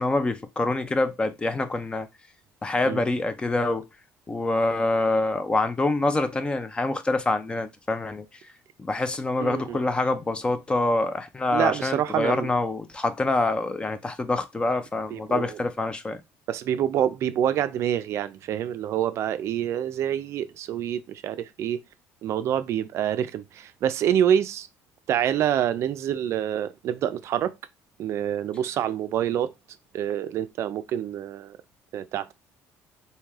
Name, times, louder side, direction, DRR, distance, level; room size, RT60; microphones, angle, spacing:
voice 1, 0.0-2.1 2.6-3.9 4.3-8.3 8.8-16.2, left 2 dB, 15° left, 0.4 m, -26 dB
voice 2, 9.4-9.8 11.5-12.5 15.1-15.6 16.5-21.8 22.2-24.7 25.1-27.5 28.0-29.5 29.9-31.6 31.9-32.3, right 10 dB, 55° right, 0.4 m, -26 dB
3.2 x 2.7 x 3.5 m
cardioid pair, 125°, 6 cm